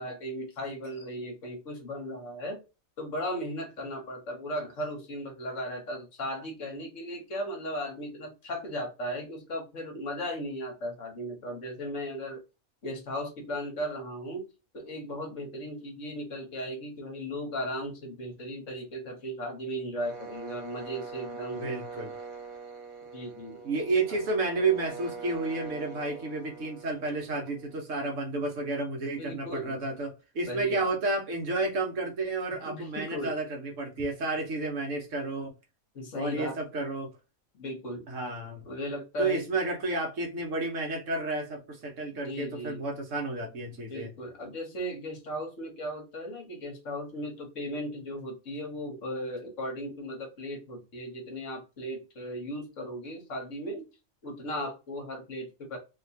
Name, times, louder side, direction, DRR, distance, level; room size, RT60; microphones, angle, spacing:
voice 1, 0.0-2.6 3.0-12.4 12.8-14.4 14.7-21.7 23.1-23.6 29.2-29.8 30.5-30.9 32.6-33.3 35.9-36.6 37.5-38.0 38.6-39.4 42.2-42.8 43.9-53.9 54.2-55.8, equal, 65° left, 1.4 m, -36 dB
sound 1, 20.0-27.8, right 4 dB, 85° right, 1.5 m, -43 dB
voice 2, 21.6-22.1 23.6-35.5 36.2-37.1 38.1-38.6 39.2-44.1, right 3 dB, 65° right, 1.4 m, -31 dB
3.1 x 2.9 x 2.7 m
omnidirectional pair, 1.4 m